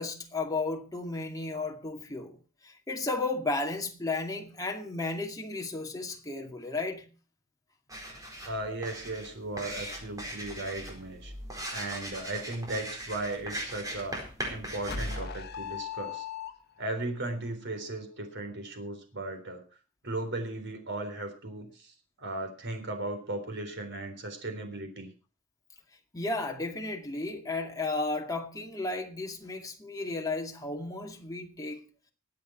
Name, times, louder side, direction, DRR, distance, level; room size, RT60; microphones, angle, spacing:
voice 1, 0.0-2.4 2.6-7.1 26.1-31.9, left 3 dB, 15° left, 2.3 m, -34 dB
sound 1, 7.9-15.2, right 1 dB, 15° right, 4.4 m, -40 dB
voice 2, 8.4-11.3 11.7-16.3 16.8-19.6 20.0-25.1, right 2 dB, 60° right, 3.7 m, -36 dB
sound 2, 14.9-17.0, left 4 dB, 50° left, 1.7 m, -37 dB
22.0 x 8.5 x 4.3 m
head